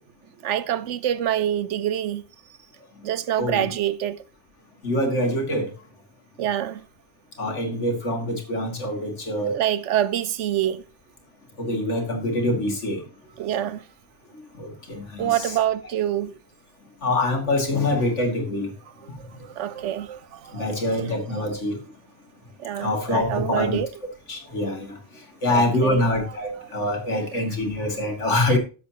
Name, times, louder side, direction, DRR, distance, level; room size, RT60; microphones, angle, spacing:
voice 1, 0.4-2.2 3.0-4.2 6.4-6.8 9.4-10.8 13.4-13.8 15.2-16.3 19.6-21.0 21.3-21.4 22.6-23.9 25.5-27.4 28.5-28.6, right 11 dB, 90° right, 1.0 m, -26 dB
voice 2, 4.8-5.7 7.4-9.5 11.6-13.0 14.6-15.5 17.0-18.7 20.5-21.8 22.8-23.8 24.3-24.9 25.4-28.6, left 1 dB, 80° left, 2.7 m, -25 dB
13.0 x 7.7 x 2.9 m
omnidirectional pair, 1.2 m